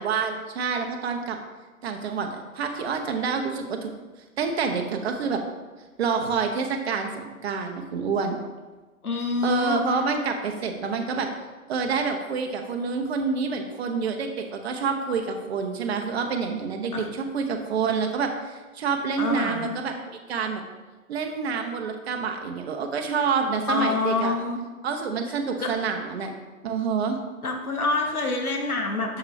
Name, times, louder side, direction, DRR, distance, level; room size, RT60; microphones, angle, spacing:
voice 1, 0.0-1.4 1.8-2.3 2.5-3.9 4.4-5.4 6.0-8.4 9.4-11.3 11.7-19.9 20.3-20.6 21.1-24.3 24.8-26.3 26.6-27.2, right 5 dB, 45° right, 4 dB, 1.0 m, -27 dB
voice 2, 9.0-9.8 16.9-17.1 19.2-19.7 23.7-24.6 25.6-25.7 27.4-29.2, left 3 dB, 85° left, 3 dB, 1.1 m, -26 dB
6.9 x 5.7 x 3.3 m, 1.2 s
figure-of-eight pair, 125°, 43 cm